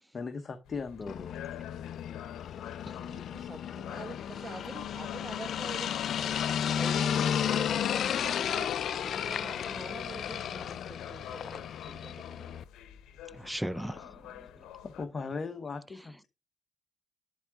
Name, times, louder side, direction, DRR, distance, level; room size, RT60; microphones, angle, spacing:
voice 1, 0.1-1.5 14.8-16.3, left 4 dB, 35° left, 1.0 m, -38 dB
sound 1, 0.7-15.1, left 11 dB, 85° left, 0.8 m, -48 dB
sound 2, 1.1-12.6, left 9 dB, 65° left, 0.4 m, -33 dB
voice 2, 2.9-6.5 6.8-12.6, right 3 dB, 30° right, 1.0 m, -45 dB
voice 3, 13.3-14.6, right 1 dB, 5° right, 0.4 m, -38 dB
10.5 x 4.7 x 3.6 m
cardioid pair, 90°, 0 cm